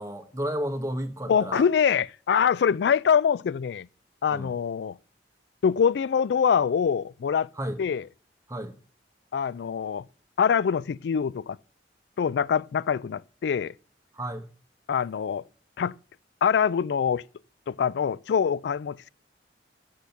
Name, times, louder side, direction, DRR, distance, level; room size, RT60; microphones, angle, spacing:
voice 1, 0.0-1.7 4.3-4.5 7.6-7.8 8.5-8.7 14.1-14.5, equal, 20° right, 1.0 m, -32 dB
voice 2, 1.3-3.9 4.2-5.0 5.6-7.5 7.8-8.0 9.3-10.1 10.4-11.6 12.2-13.7 14.9-15.5 15.8-16.0 16.4-17.2 17.7-19.1, left 7 dB, 70° left, 0.3 m, -24 dB
8.3 x 6.7 x 5.7 m
head